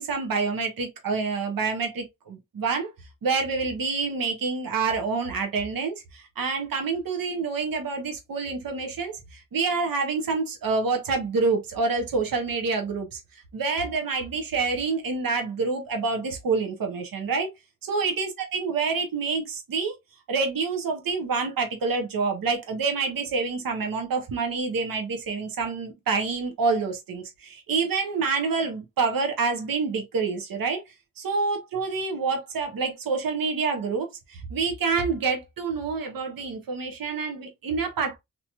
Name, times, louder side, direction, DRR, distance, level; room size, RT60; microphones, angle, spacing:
voice 1, 0.0-2.9 3.2-13.2 13.5-17.5 17.8-19.9 20.3-30.8 31.2-38.2, right 4 dB, 80° right, 0.9 m, -27 dB
2.9 x 2.8 x 2.2 m
cardioid pair, 70°, 34 cm